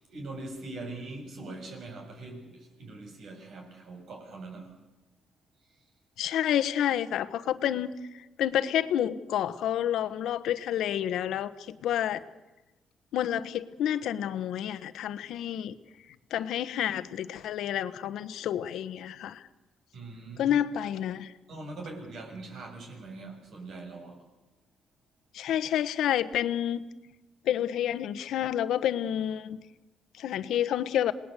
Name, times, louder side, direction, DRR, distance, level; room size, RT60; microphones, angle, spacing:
voice 1, 0.1-4.7 19.9-20.6 21.5-24.2, right 2 dB, 65° right, 2 dB, 7.6 m, -42 dB
voice 2, 6.2-7.9 8.4-12.2 13.1-15.7 16.3-19.4 20.4-21.3 25.3-26.8 27.5-29.6 30.2-31.1, left 10 dB, 80° left, 12 dB, 1.2 m, -29 dB
27.5 x 19.5 x 8.3 m, 1.1 s
cardioid pair, 90°, 0 cm